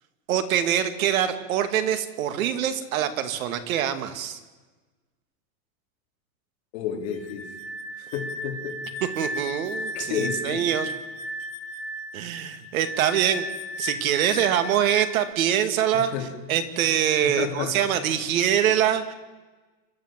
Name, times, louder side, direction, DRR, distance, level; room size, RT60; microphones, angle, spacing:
voice 1, 0.3-4.4 9.2-10.9 12.1-13.5 13.8-16.1 16.5-19.1, right 10 dB, 85° right, 10 dB, 2.3 m, -24 dB
voice 2, 6.7-7.5 8.0-8.8 9.9-10.6 15.9-16.3 17.2-17.8, left 8 dB, 50° left, 1 dB, 3.9 m, -31 dB
sound 1, 7.1-15.3, left 1 dB, 90° left, 3.3 m, -35 dB
28.0 x 13.0 x 7.6 m, 1.2 s
supercardioid pair, 180°, 40 cm